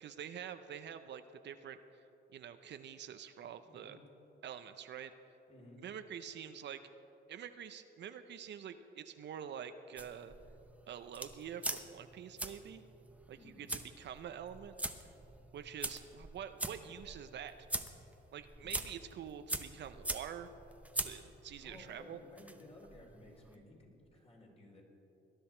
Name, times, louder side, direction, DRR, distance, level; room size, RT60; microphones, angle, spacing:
voice 1, 0.0-2.0 2.3-4.0 4.4-5.1 5.8-6.8 7.3-10.3 10.9-12.8 13.3-14.7 15.5-17.5 18.3-20.5 20.9-22.2, right 8 dB, 60° right, 10 dB, 0.6 m, -46 dB
voice 2, 3.6-4.0 5.5-5.9 13.4-13.7 18.6-18.7 21.6-24.8, left 1 dB, 30° left, -1 dB, 3.1 m, -57 dB
sound 1, 10.0-23.5, right 1 dB, 5° right, 0.8 m, -44 dB
19.0 x 10.5 x 4.4 m, 3.0 s
cardioid pair, 90°, 20 cm